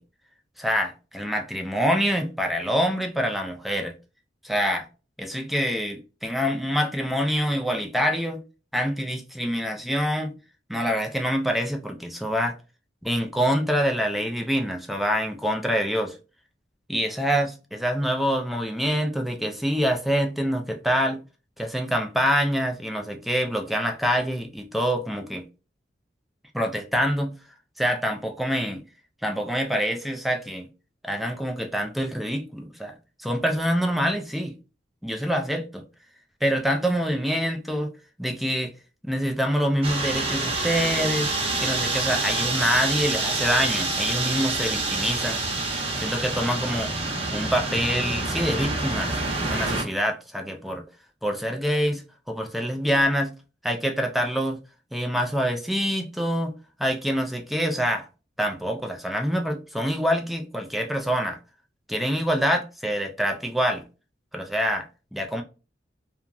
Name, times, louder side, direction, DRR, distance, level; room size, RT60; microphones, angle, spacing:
voice 1, 0.6-4.0 4.4-4.9 5.2-8.4 8.7-10.3 10.7-12.6 13.0-16.2 16.9-21.2 21.6-25.4 26.5-27.4 27.8-28.8 29.2-30.7 31.0-34.5 35.0-35.8 36.4-37.9 38.2-38.7 39.0-41.3 41.6-45.4 46.0-46.9 47.3-49.2 49.5-50.8 51.2-53.3 53.6-54.6 54.9-56.5 56.8-58.1 58.4-61.4 61.9-63.8 64.3-64.9 65.1-65.4, equal, ahead, 0.4 m, -26 dB
sound 1, 39.8-49.8, right 2 dB, 30° right, 0.9 m, -27 dB
2.9 x 2.3 x 2.4 m
head